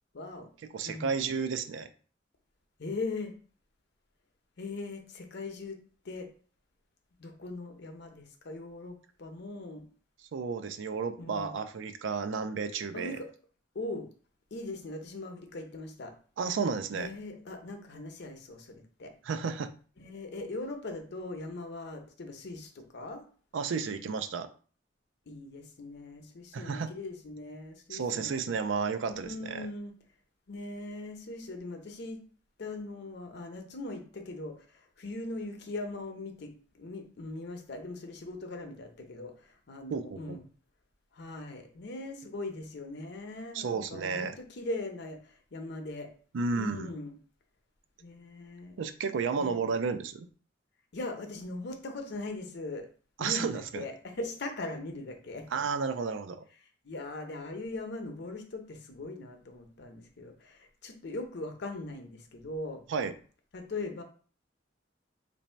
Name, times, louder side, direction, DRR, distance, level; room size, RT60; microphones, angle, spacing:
voice 1, 0.1-0.5 0.8-1.1 2.8-3.4 4.6-5.8 6.0-6.3 7.2-9.8 11.2-11.6 12.9-13.3 13.7-14.1 14.5-16.1 16.9-19.1 20.0-23.2 25.3-28.3 29.1-29.9 30.5-32.2 32.6-40.4 41.1-46.1 46.5-47.1 48.0-48.8 49.4-49.6 50.9-52.9 53.2-55.5 56.8-62.8 63.5-64.0, left 2 dB, 65° left, 5 dB, 0.7 m, -40 dB
voice 2, 0.7-1.9 10.3-13.2 16.4-17.1 19.2-19.7 23.5-24.5 26.5-26.9 27.9-29.7 39.9-40.4 43.5-44.4 46.3-46.9 48.8-50.3 53.2-53.8 55.5-56.4 62.9-63.1, right 5 dB, 85° right, 10 dB, 0.4 m, -32 dB
3.0 x 2.7 x 4.3 m, 0.42 s
head